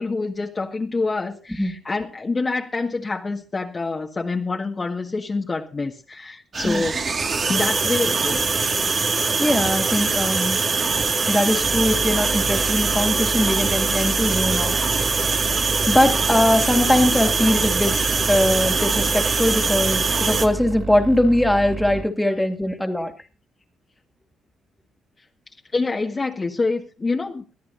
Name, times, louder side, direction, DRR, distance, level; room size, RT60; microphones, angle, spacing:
voice 1, 0.0-7.0 7.5-8.5 17.2-17.3 22.3-23.3 25.7-27.4, left 3 dB, 30° left, 1.7 m, -27 dB
sound 1, 6.5-20.5, right 4 dB, 45° right, 2.1 m, -22 dB
voice 2, 9.4-10.6 11.3-14.8 15.9-23.1, left 1 dB, 5° left, 2.5 m, -21 dB
sound 2, 11.6-22.0, right 4 dB, 60° right, 5.5 m, -31 dB
22.5 x 13.5 x 2.7 m
cardioid pair, 90°, 0 cm